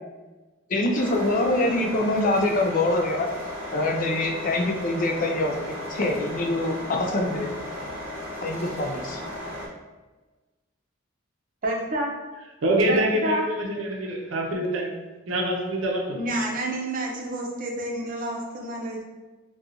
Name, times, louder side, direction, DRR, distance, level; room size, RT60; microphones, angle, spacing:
voice 1, 0.7-3.3 3.7-7.5 8.4-9.2, left 2 dB, 45° left, 3 dB, 0.4 m, -25 dB
sound 1, 0.9-9.7, left 1 dB, 10° right, 0.8 m, -35 dB
voice 2, 11.6-12.1 12.9-13.4 16.1-19.0, right 1 dB, 45° right, -1 dB, 0.6 m, -29 dB
voice 3, 12.6-15.0 15.3-16.2, right 1 dB, 85° right, 1 dB, 0.6 m, -25 dB
4.1 x 2.3 x 2.5 m, 1.2 s
head